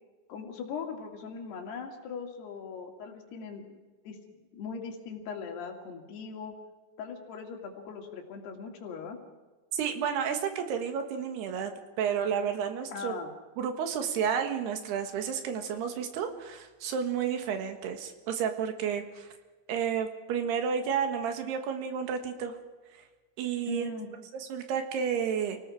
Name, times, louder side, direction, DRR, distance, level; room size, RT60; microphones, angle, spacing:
voice 1, 0.3-3.8 4.1-6.5 7.0-9.2 12.9-13.3 23.7-24.1, left 5 dB, 80° left, 2 dB, 4.4 m, -40 dB
voice 2, 9.7-13.2 13.6-19.3 19.7-22.6 22.9-23.0 23.4-23.9 24.3-25.6, right 7 dB, 85° right, 6 dB, 3.7 m, -31 dB
28.5 x 18.5 x 4.9 m, 1.3 s
omnidirectional pair, 4.6 m